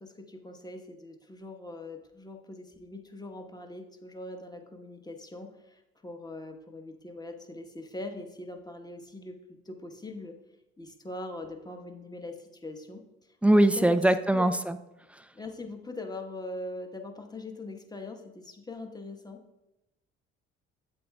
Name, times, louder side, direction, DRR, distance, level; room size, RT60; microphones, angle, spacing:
voice 1, 0.0-10.4 10.8-13.0 13.5-14.0 14.3-14.5 15.3-19.4, left 2 dB, 10° left, 4 dB, 1.2 m, -42 dB
voice 2, 13.4-14.8, right 1 dB, 5° right, 11 dB, 0.4 m, -21 dB
8.6 x 8.6 x 2.3 m, 0.93 s
figure-of-eight pair, 50°, 33 cm